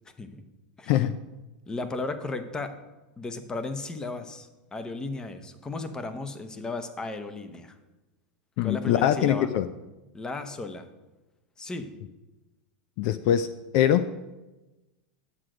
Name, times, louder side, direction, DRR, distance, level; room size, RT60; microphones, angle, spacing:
voice 1, 1.7-2.7 3.2-7.7 8.6-9.5 10.1-10.9 11.6-11.9, left 3 dB, 15° left, 9 dB, 0.8 m, -35 dB
voice 2, 8.6-9.7 13.0-14.1, left 11 dB, 50° left, 13 dB, 0.4 m, -23 dB
9.8 x 7.7 x 4.9 m, 1.1 s
supercardioid pair, 135°, 5 cm